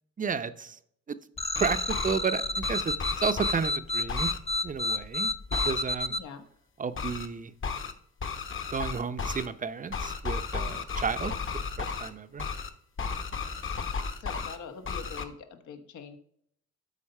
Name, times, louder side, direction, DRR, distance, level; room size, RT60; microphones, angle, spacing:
voice 1, 0.2-0.8 1.1-1.2 1.6-4.3 4.6-5.3 5.6-6.1 6.8-7.5 8.7-11.3 11.8-12.5, right 5 dB, 25° right, 0.7 m, -32 dB
sound 1, 1.4-2.2 2.6-3.7 4.1-4.4 5.5-5.8 7.0-7.3 7.6-7.9 8.2-9.5 9.9-12.1 12.4-12.7 13.0-14.6 14.9-15.2, left 5 dB, 40° left, 1.1 m, -33 dB
sound 2, 1.4-6.2, left 1 dB, 20° left, 0.5 m, -30 dB
voice 2, 6.1-6.4 14.2-16.2, left 6 dB, 75° left, 1.3 m, -43 dB
12.5 x 4.1 x 5.5 m
cardioid pair, 90°, 30 cm